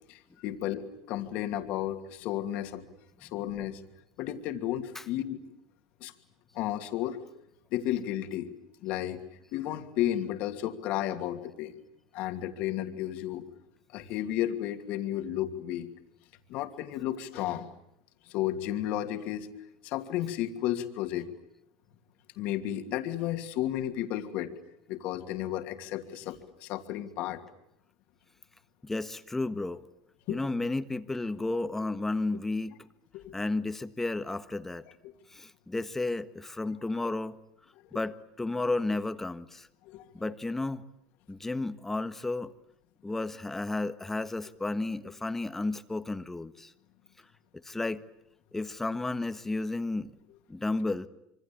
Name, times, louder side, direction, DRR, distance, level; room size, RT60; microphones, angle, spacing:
voice 1, 0.1-2.9 3.2-3.8 4.2-5.4 6.0-6.1 6.5-7.2 7.7-8.5 8.8-9.2 9.5-11.7 12.1-13.5 13.9-15.9 16.5-17.7 18.3-19.5 19.8-21.3 22.4-24.5 24.9-27.4 30.3-30.4 33.1-33.3 35.0-35.1 37.9-38.0 39.9-40.0, left 12 dB, 60° left, 6 dB, 2.7 m, -33 dB
voice 2, 28.8-29.8 30.3-32.8 33.3-34.8 35.3-37.4 37.9-39.7 40.1-40.8 41.3-42.5 43.0-46.7 47.6-48.0 48.5-50.1 50.5-51.1, left 2 dB, 10° left, 11 dB, 1.5 m, -32 dB
26.5 x 24.5 x 8.8 m, 0.78 s
hypercardioid pair, 95°, 3 cm